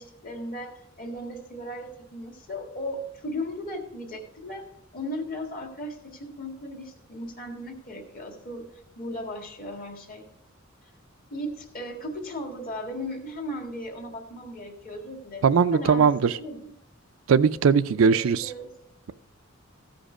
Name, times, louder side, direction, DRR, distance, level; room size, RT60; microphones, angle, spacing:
voice 1, 0.0-8.7 9.0-10.3 11.3-16.7 18.0-18.7, left 1 dB, 45° left, 1.7 m, -36 dB
voice 2, 15.4-16.3 17.3-18.5, right 6 dB, 75° right, 0.4 m, -20 dB
14.5 x 5.2 x 4.9 m
head